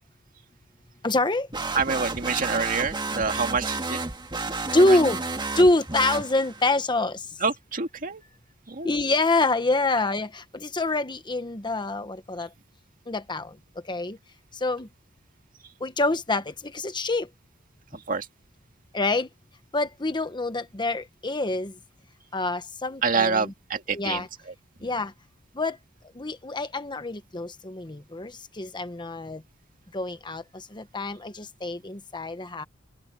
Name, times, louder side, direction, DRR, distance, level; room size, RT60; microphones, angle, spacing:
voice 1, 1.0-1.5 4.7-5.2 5.6-7.2 8.8-12.5 13.1-13.5 13.9-14.2 14.6-14.9 15.8-16.4 16.7-17.3 18.9-19.3 19.7-21.7 22.3-23.5 23.9-24.3 24.8-25.1 25.6-25.8 26.2-28.3 28.6-29.4 29.9-30.4 30.7-31.3 31.6-32.6, left 2 dB, 25° left, 1.1 m, -25 dB
sound 1, 1.5-6.7, right 3 dB, 25° right, 1.8 m, -31 dB
voice 2, 1.7-4.0 4.8-5.0 7.4-8.2 8.7-9.0 17.9-18.3 23.0-24.5 24.8-24.9, right 5 dB, 45° right, 2.0 m, -27 dB
head